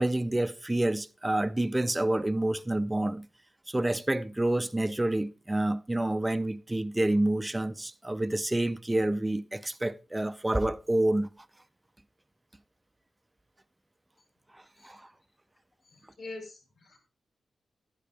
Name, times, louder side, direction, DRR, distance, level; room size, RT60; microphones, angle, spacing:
voice 1, 0.0-3.3 3.7-11.5 14.5-15.1, right 1 dB, 10° right, 0.5 m, -28 dB
voice 2, 15.8-17.0, left 3 dB, 60° left, 4.3 m, -45 dB
11.0 x 10.0 x 3.4 m
wide cardioid pair, 135°, 0 cm